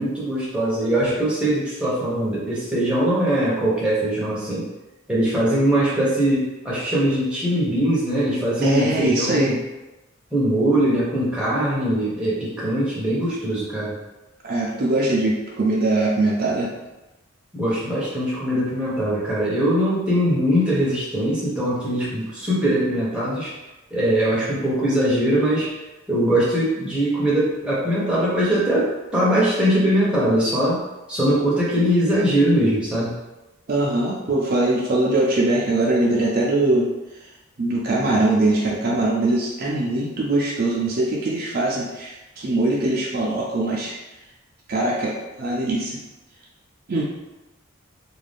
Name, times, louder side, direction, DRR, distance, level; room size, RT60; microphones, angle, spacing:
voice 1, 0.0-4.7 5.1-9.6 10.3-14.0 17.5-23.5 23.9-25.7 26.1-30.8 31.1-33.2, right 1 dB, 5° right, -8 dB, 0.7 m, -21 dB
voice 2, 8.6-9.5 14.4-16.7 33.7-36.9 37.6-44.0 44.7-46.0 46.9-47.0, right 2 dB, 45° right, -4 dB, 0.4 m, -22 dB
2.5 x 2.2 x 3.3 m, 1.1 s
head